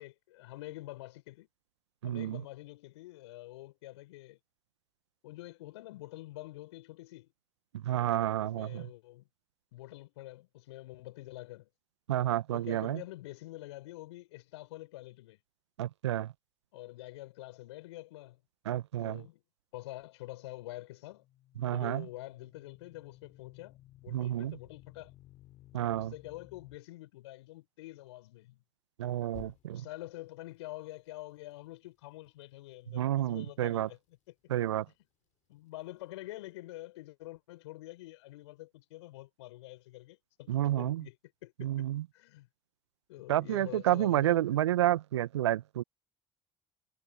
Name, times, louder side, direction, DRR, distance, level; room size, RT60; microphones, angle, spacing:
voice 1, 0.0-1.5 2.0-4.4 5.2-7.3 8.4-9.3 9.7-11.7 12.5-15.4 16.7-18.4 19.0-19.4 19.7-21.3 21.7-25.1 26.0-28.6 29.7-34.0 35.5-40.5 40.8-41.2 41.4-41.7 42.1-42.5 43.1-44.6, left 18 dB, 75° left, 5.4 m, -46 dB
voice 2, 2.0-2.4 7.7-8.9 12.1-13.0 15.8-16.3 18.6-19.2 21.6-22.0 24.1-24.6 25.7-26.1 29.0-29.8 32.9-33.9 34.5-34.8 40.5-41.0 41.6-42.0 43.3-45.8, right 13 dB, 80° right, 1.2 m, -30 dB
sound 1, 21.0-26.8 29.3-30.0, left 15 dB, 60° left, 7.1 m, -56 dB
figure-of-eight pair, 55°, 14 cm